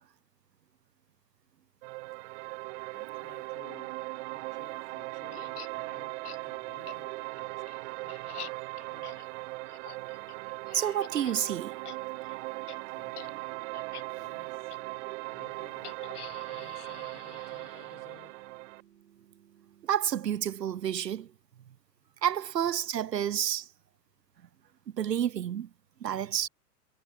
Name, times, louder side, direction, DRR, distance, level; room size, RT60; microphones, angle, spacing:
sound 1, 1.8-18.8, right 24 dB, 45° right, 1.9 m, -39 dB
voice 1, 2.9-7.7 8.0-9.3 12.9-13.5 14.1-14.8 15.3-18.5, left 24 dB, 40° left, 7.0 m, -57 dB
sound 2, 5.3-5.7 6.2-6.4 6.9-7.0 7.4-11.4 11.7-12.0 12.2-12.4 12.7-12.8 13.1-13.3 13.7-14.0 14.7-14.8 15.8-18.2, left 11 dB, 65° left, 4.3 m, -48 dB
sound 3, 10.0-20.0, right 10 dB, 65° right, 7.1 m, -61 dB
voice 2, 10.7-11.7 19.9-21.3 22.2-23.7 24.9-25.7 26.0-26.5, right 10 dB, 80° right, 0.9 m, -29 dB
hypercardioid pair, 110°, 48 cm